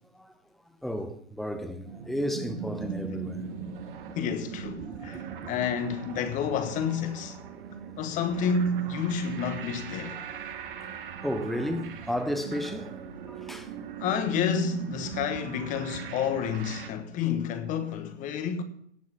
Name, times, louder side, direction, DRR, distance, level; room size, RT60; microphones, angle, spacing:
voice 1, 0.8-3.5 4.8-5.5 10.0-10.4 11.2-12.9 13.3-13.7, equal, ahead, 0.7 m, -33 dB
sound 1, 1.9-16.9, right 7 dB, 45° right, 1.8 m, -40 dB
voice 2, 4.1-7.4 8.0-10.2 14.0-18.6, left 6 dB, 20° left, 1.3 m, -29 dB
17.0 x 6.3 x 5.8 m
figure-of-eight pair, 120°, 36 cm